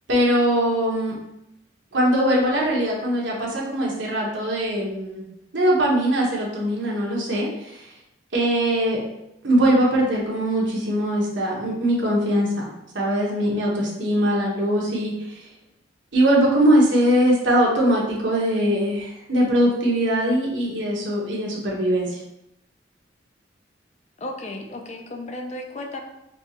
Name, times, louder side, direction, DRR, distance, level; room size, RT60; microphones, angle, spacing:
voice 1, 0.1-1.1 1.9-5.2 5.5-7.5 8.3-9.0 9.4-12.7 12.9-15.1 16.1-22.1, right 1 dB, 75° right, -3 dB, 1.0 m, -21 dB
voice 2, 24.2-26.0, left 1 dB, 35° left, 3 dB, 0.4 m, -34 dB
4.4 x 2.3 x 2.9 m, 0.86 s
head